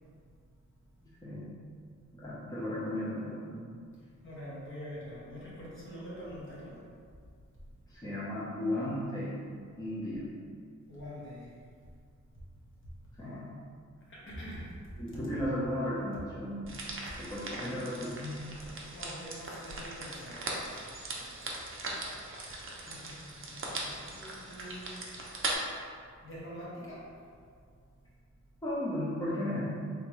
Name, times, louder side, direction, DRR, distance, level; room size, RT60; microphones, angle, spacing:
voice 1, 1.0-1.5 2.2-3.7 7.9-9.4 9.8-10.3 13.2-13.5 15.0-16.6 17.2-18.4 28.6-29.6, left 1 dB, 10° left, -9 dB, 0.7 m, -35 dB
voice 2, 4.2-6.8 10.9-11.6 14.1-14.7 18.9-21.0 22.8-25.0 26.2-27.1, equal, 40° left, -7 dB, 1.1 m, -45 dB
sound 1, 16.7-25.5, right 2 dB, 45° right, 0.6 m, -40 dB
3.5 x 2.8 x 3.0 m, 2.2 s
wide cardioid pair, 105°, 30 cm